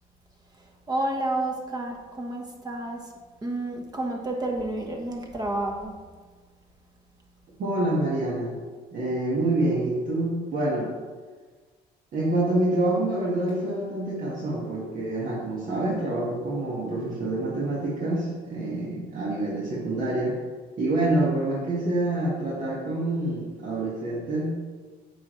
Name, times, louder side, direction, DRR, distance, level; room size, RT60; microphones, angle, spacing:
voice 1, 0.6-3.1 3.4-5.9, right 1 dB, 25° right, 1 dB, 1.2 m, -30 dB
voice 2, 7.6-8.6 8.9-10.9 12.1-20.4 20.8-24.6, right 2 dB, 50° right, -6 dB, 1.5 m, -27 dB
8.4 x 5.2 x 3.1 m, 1.4 s
cardioid pair, 110°, 17 cm